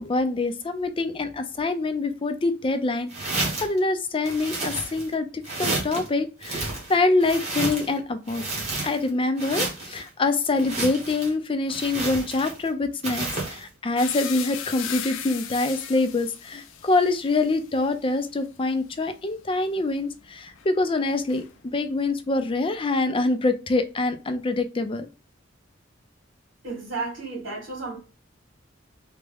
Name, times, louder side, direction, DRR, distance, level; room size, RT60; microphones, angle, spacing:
voice 1, 0.0-8.4 8.8-25.1, left 3 dB, 25° left, 0.4 m, -25 dB
sound 1, 3.1-3.8 4.2-5.1 5.4-6.1 6.4-8.0 8.3-9.1 9.4-10.0 10.6-11.3 11.7-12.7 13.0-13.6, right 2 dB, 35° right, 1.2 m, -31 dB
sound 2, 14.0-21.9 22.2-23.3, left 9 dB, 80° left, 0.5 m, -39 dB
voice 2, 26.6-28.0, right 3 dB, 80° right, 2.0 m, -32 dB
3.4 x 2.1 x 3.4 m
head